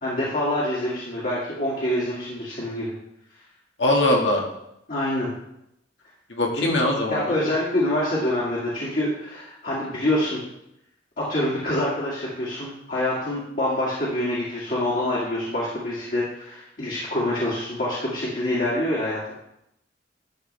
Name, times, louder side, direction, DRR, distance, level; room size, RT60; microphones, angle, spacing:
voice 1, 0.0-2.9 4.9-5.3 6.6-6.7 7.1-10.4 11.2-19.2, left 1 dB, 45° left, -7 dB, 2.2 m, -26 dB
voice 2, 3.8-4.4 6.3-7.4, left 1 dB, 75° left, 0 dB, 1.9 m, -21 dB
11.5 x 7.3 x 3.4 m, 0.82 s
head